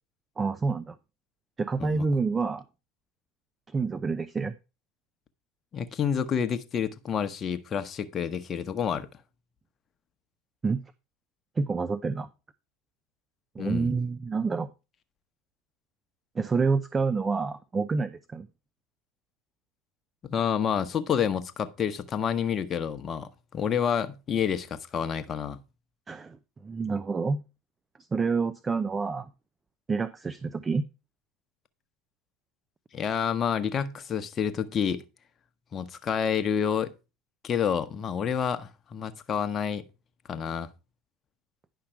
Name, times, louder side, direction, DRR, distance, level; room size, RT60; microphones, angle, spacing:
voice 1, 0.4-0.9 1.6-2.6 3.7-4.5 10.6-10.8 11.6-12.3 13.6-14.7 16.4-18.5 26.1-26.4 26.6-27.4 28.1-29.3 29.9-30.8, right 4 dB, 25° right, 0.6 m, -28 dB
voice 2, 5.7-9.1 13.6-13.9 20.3-25.6 32.9-35.0 35.7-36.9 37.4-39.8 40.3-40.7, left 7 dB, 35° left, 1.0 m, -29 dB
10.0 x 5.8 x 4.5 m
hypercardioid pair, 80°, 0 cm